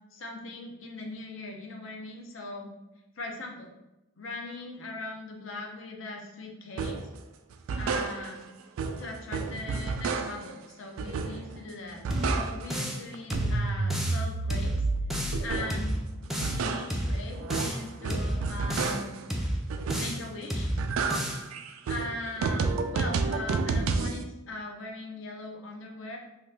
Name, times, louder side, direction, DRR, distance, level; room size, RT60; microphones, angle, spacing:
voice 1, 0.1-2.7 3.2-3.7 4.2-7.0 7.7-8.4 9.0-12.1 12.3-14.7 15.4-19.2 19.9-20.7 21.9-26.2, left 2 dB, 70° left, 1 dB, 0.6 m, -40 dB
sound 1, 6.8-7.1 7.5-8.5 8.8-10.6 11.0-11.6 11.9-12.8 13.1-15.9 16.2-19.3 19.7-20.3 20.6-24.2, right 4 dB, 85° right, 0.3 m, -31 dB
sound 2, 12.1-13.0 13.3-14.2 14.5-15.4 15.7-16.6 16.9-17.8 18.1-19.0 19.3-20.2 20.5-21.4, equal, ahead, 0.3 m, -31 dB
2.9 x 2.4 x 3.2 m, 0.94 s
head